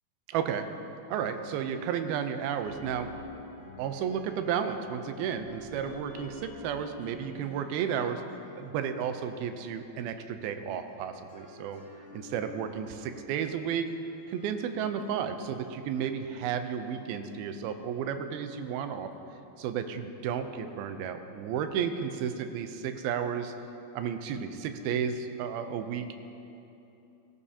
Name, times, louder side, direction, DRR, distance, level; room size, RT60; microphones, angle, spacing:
voice 1, 0.3-0.7 1.1-3.1 3.8-8.2 8.5-11.8 12.1-13.9 14.3-19.1 19.6-23.5 23.9-26.2, right 8 dB, 85° right, 8 dB, 2.6 m, -32 dB
sound 1, 2.6-10.4 10.9-17.4, left 3 dB, 45° left, 3.0 m, -50 dB
17.5 x 14.0 x 2.8 m, 2.9 s
omnidirectional pair, 4.3 m